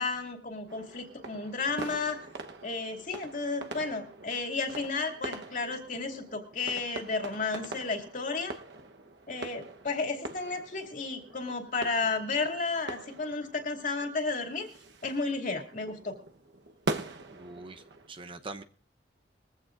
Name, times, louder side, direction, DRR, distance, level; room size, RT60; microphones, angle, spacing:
voice 1, 0.0-2.2 2.6-8.5 9.3-14.7 15.0-16.1, left 3 dB, 50° left, 4 dB, 2.5 m, -32 dB
sound 1, 0.7-18.1, right 2 dB, 70° right, 1.1 m, -43 dB
voice 2, 17.3-17.8 18.1-18.6, right 3 dB, 30° right, 9 dB, 0.7 m, -42 dB
21.5 x 15.0 x 2.6 m, 0.39 s
head